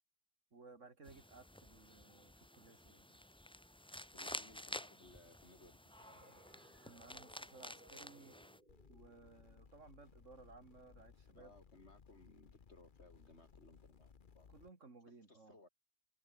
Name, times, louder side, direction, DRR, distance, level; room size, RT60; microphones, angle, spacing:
voice 1, 0.5-3.1 6.8-8.4 8.9-11.5 14.5-15.6, right 3 dB, 80° right, 3.2 m, -59 dB
sound 1, 1.0-8.6, left 1 dB, 5° left, 0.7 m, -51 dB
voice 2, 4.1-5.9 11.3-14.5 15.1-15.7, left 2 dB, 60° left, 4.6 m, -63 dB
sound 2, 6.0-11.3, right 1 dB, 40° right, 7.3 m, -66 dB
sound 3, 8.7-14.7, left 6 dB, 45° left, 1.1 m, -63 dB
omnidirectional pair, 1.3 m